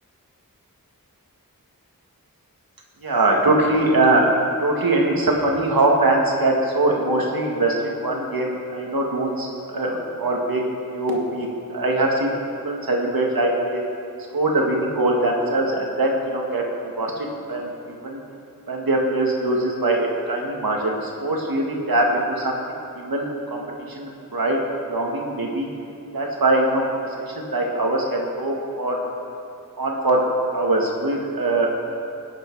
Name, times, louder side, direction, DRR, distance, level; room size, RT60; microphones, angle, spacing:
voice 1, 3.0-4.3 4.6-7.7 8.0-10.6 10.9-12.4 12.6-13.8 14.3-16.6 17.0-18.2 18.7-22.6 22.9-24.6 24.9-25.7 26.1-26.8 27.3-29.0 29.8-31.7, right 2 dB, 75° right, -1 dB, 1.9 m, -22 dB
17.5 x 9.6 x 4.7 m, 2.8 s
wide cardioid pair, 65°, 36 cm